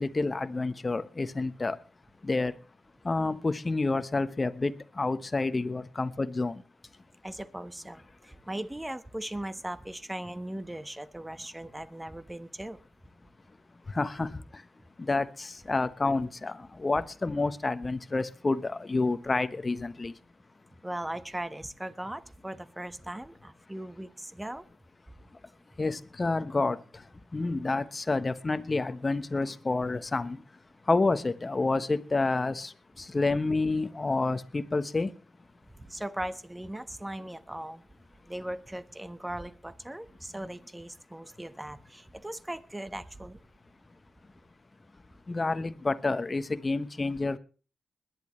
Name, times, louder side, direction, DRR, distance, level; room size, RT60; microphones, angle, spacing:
voice 1, 0.0-1.7 2.2-2.5 3.0-6.5 14.0-14.3 15.1-16.5 16.8-20.1 25.8-26.8 27.3-30.4 30.9-32.7 33.1-35.1 45.3-47.4, left 3 dB, 35° left, 1.2 m, -29 dB
voice 2, 7.2-12.8 20.8-24.7 35.8-37.8 38.3-43.4, right 1 dB, 15° right, 1.3 m, -39 dB
21.0 x 11.0 x 3.2 m
supercardioid pair, 50°, 0 cm